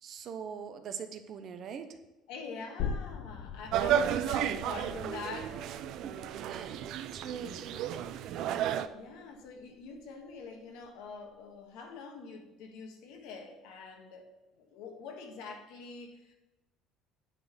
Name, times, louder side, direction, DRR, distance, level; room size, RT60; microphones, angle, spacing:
voice 1, 0.0-2.0 6.0-6.1 6.5-6.9 7.1-8.3, right 7 dB, 45° right, 8 dB, 0.8 m, -42 dB
voice 2, 2.3-5.8 7.7-8.0 8.9-14.3 14.5-16.3, left 4 dB, 85° left, 3 dB, 1.7 m, -45 dB
sound 1, 2.8-10.1 10.4-10.5, left 7 dB, 60° left, 0.5 m, -43 dB
sound 2, 3.7-8.9, right 10 dB, 60° right, 0.4 m, -32 dB
9.9 x 4.1 x 6.8 m, 1.0 s
cardioid pair, 150°, 0 cm